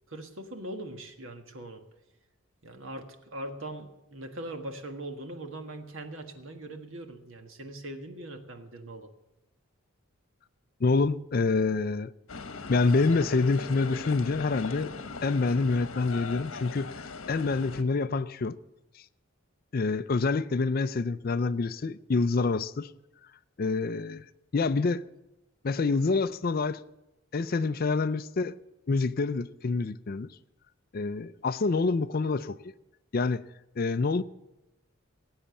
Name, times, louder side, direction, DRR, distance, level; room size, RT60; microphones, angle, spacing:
voice 1, 0.1-1.8 2.6-9.1, right 1 dB, 70° right, 1.6 m, -41 dB
voice 2, 10.8-12.1 12.7-14.9 15.2-18.5 18.9-19.0 19.7-22.9 23.6-24.3 24.5-25.0 25.6-26.8 27.3-28.6 28.9-30.3 30.9-32.6 33.1-33.4 33.8-34.2, left 3 dB, 45° left, 0.4 m, -27 dB
sound 1, 12.3-17.8, left 4 dB, 70° left, 1.2 m, -40 dB
19.0 x 8.7 x 7.1 m
head